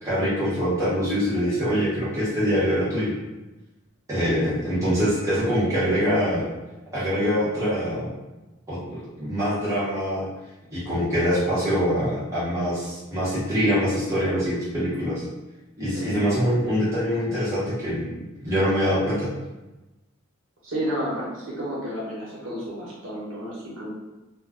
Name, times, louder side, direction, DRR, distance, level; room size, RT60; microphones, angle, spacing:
voice 1, 0.0-3.1 4.1-6.4 6.9-8.1 8.7-10.3 10.7-15.2 15.8-18.1 18.4-19.3, equal, 15° right, -11 dB, 0.8 m, -24 dB
voice 2, 15.9-16.3 20.6-23.9, equal, 65° right, -6 dB, 1.0 m, -31 dB
2.3 x 2.2 x 3.4 m, 1.1 s
head